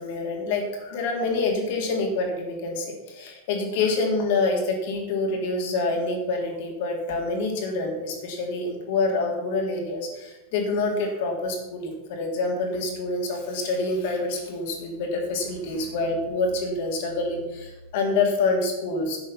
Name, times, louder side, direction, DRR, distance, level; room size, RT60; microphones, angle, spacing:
voice 1, 0.0-19.2, left 3 dB, 50° left, 2 dB, 3.3 m, -27 dB
11.0 x 9.7 x 5.9 m, 1.1 s
figure-of-eight pair, 90°, 0 cm